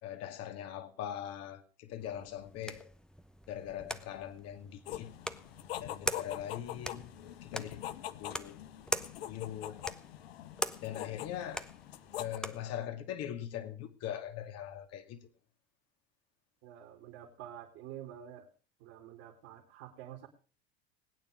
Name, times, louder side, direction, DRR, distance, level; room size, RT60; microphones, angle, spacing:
voice 1, 0.0-2.9 3.5-5.1 5.8-7.1 7.4-8.6 9.3-9.8 10.8-11.7 12.2-15.2, left 10 dB, 50° left, 2.5 m, -41 dB
sound 1, 2.0-12.7, left 1 dB, ahead, 0.9 m, -43 dB
sound 2, 4.9-12.4, left 13 dB, 75° left, 0.9 m, -44 dB
voice 2, 16.6-18.5 18.8-20.3, right 11 dB, 60° right, 3.3 m, -48 dB
21.0 x 9.4 x 5.1 m
hypercardioid pair, 75°, 31 cm